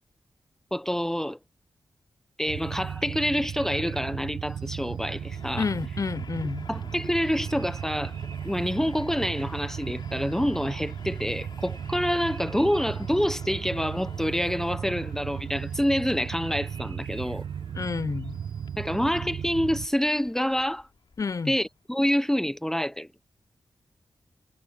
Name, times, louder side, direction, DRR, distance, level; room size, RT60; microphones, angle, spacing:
voice 1, 0.7-1.4 2.4-5.7 6.7-8.1 8.4-17.4 18.8-20.9 21.5-23.1, equal, 5° left, 1.1 m, -27 dB
sound 1, 2.5-19.9, right 8 dB, 80° right, 0.4 m, -35 dB
Train, 4.5-22.1, left 5 dB, 75° left, 3.9 m, -51 dB
voice 2, 5.6-6.7 17.7-18.4 21.2-21.6, left 4 dB, 45° left, 0.7 m, -30 dB
wide cardioid pair, 85°, 8 cm